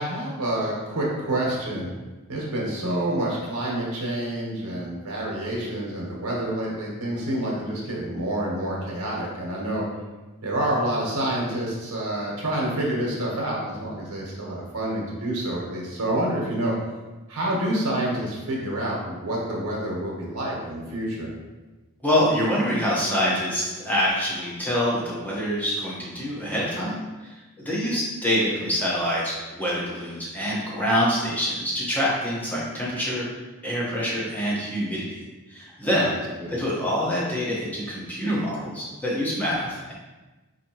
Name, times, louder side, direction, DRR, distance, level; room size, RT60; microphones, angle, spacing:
voice 1, 0.0-1.9 2.3-9.8 10.4-16.7 17.3-21.3 36.0-36.1 36.4-36.6, right 1 dB, 90° right, -4 dB, 1.0 m, -28 dB
voice 2, 22.0-33.2 33.6-36.2 36.5-39.9, equal, 10° left, -6 dB, 0.9 m, -26 dB
4.1 x 2.8 x 2.8 m, 1.2 s
head